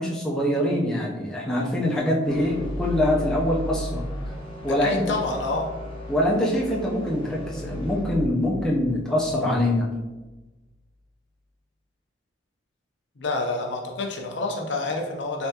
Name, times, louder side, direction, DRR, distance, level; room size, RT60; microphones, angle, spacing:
voice 1, 0.0-4.0 4.6-5.1 6.1-9.9, left 1 dB, 5° left, -5 dB, 0.5 m, -24 dB
sound 1, 2.2-10.4, equal, 25° left, 0.9 m, -35 dB
voice 2, 4.7-5.7 13.2-15.5, left 3 dB, 70° left, 1 dB, 0.6 m, -28 dB
3.5 x 3.4 x 2.8 m, 1.1 s
head